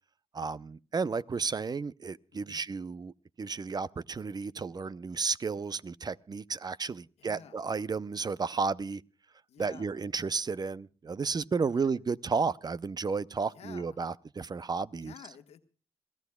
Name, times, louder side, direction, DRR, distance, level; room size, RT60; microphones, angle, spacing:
voice 1, 0.3-9.0 9.6-15.1, right 5 dB, 40° right, 0.6 m, -33 dB
voice 2, 7.2-7.7 9.5-10.0 11.7-12.0 13.5-14.0 15.0-15.6, left 8 dB, 85° left, 1.4 m, -51 dB
27.5 x 15.5 x 2.3 m
cardioid pair, 65°, 10 cm